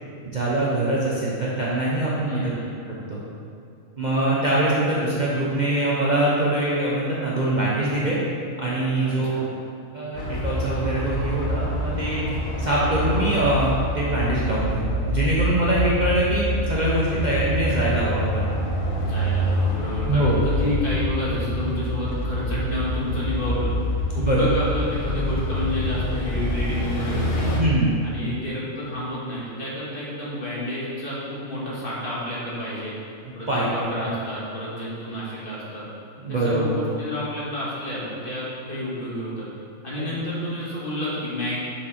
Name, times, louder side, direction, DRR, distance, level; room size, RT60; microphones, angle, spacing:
voice 1, 0.3-2.4 3.1-3.2 4.0-8.2 8.6-9.5 9.9-12.2 12.6-18.4 20.1-20.4 24.2-24.4 27.6-28.1 33.5-33.7 36.2-36.8 39.9-40.1, right 1 dB, 35° right, -7 dB, 0.9 m, -23 dB
voice 2, 2.3-2.7 9.0-9.4 19.0-23.7 24.1-27.5 28.0-32.9 33.3-35.9 36.3-39.5 39.8-41.6, left 1 dB, 40° left, -7 dB, 2.1 m, -30 dB
sound 1, 10.2-27.6, equal, 70° left, 1.4 m, -26 dB
6.9 x 4.9 x 5.8 m, 2.4 s
omnidirectional pair, 1.4 m